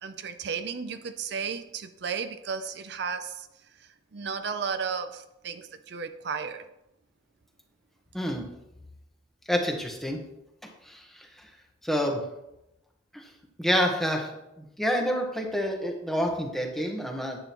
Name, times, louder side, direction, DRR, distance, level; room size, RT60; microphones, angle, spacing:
voice 1, 0.0-6.7, right 6 dB, 55° right, 9 dB, 0.5 m, -34 dB
voice 2, 8.1-8.5 9.5-10.2 10.9-11.3 11.8-12.2 13.1-13.2 13.6-14.3 14.6-17.4, equal, ahead, 1 dB, 1.2 m, -28 dB
10.5 x 9.0 x 3.0 m, 0.90 s
head